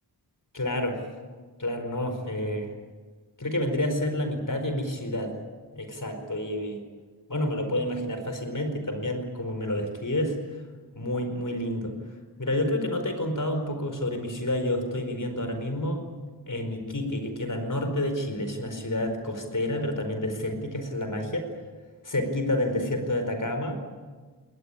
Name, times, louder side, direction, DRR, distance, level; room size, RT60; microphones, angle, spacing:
voice 1, 0.5-1.0 1.6-2.7 3.4-5.4 5.7-6.8 7.3-10.4 11.0-11.9 12.4-16.0 16.5-21.5 22.0-23.8, left 1 dB, 50° left, 7 dB, 4.8 m, -29 dB
20.5 x 19.5 x 9.9 m, 1.4 s
wide cardioid pair, 60°, 41 cm